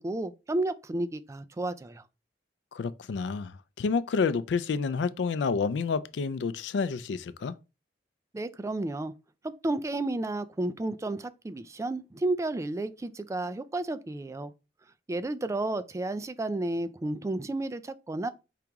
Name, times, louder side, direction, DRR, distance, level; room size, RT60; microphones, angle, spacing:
voice 1, 0.0-2.0 8.3-9.1 9.4-14.5 15.1-18.3, right 2 dB, 15° right, 0.3 m, -32 dB
voice 2, 2.7-7.5, left 5 dB, 85° left, 0.4 m, -29 dB
4.9 x 2.9 x 3.5 m
head